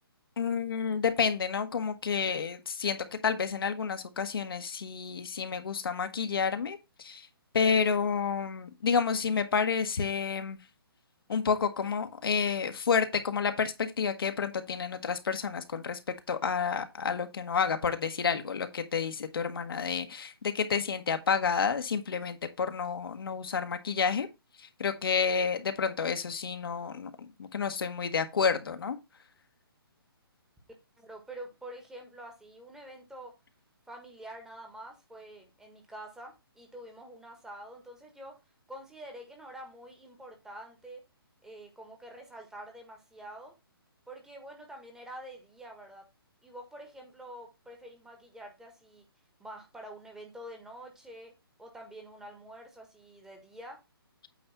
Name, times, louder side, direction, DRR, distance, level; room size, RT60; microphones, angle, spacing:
voice 1, 0.4-7.3 7.5-10.6 11.3-24.3 24.6-29.0, left 6 dB, 65° left, 1.3 m, -30 dB
voice 2, 31.0-33.4 33.9-38.4 38.7-41.1 41.4-43.5 44.1-46.1 46.4-49.0 49.4-53.8, right 1 dB, 5° right, 1.4 m, -47 dB
8.6 x 3.4 x 5.8 m
hypercardioid pair, 150°, 13 cm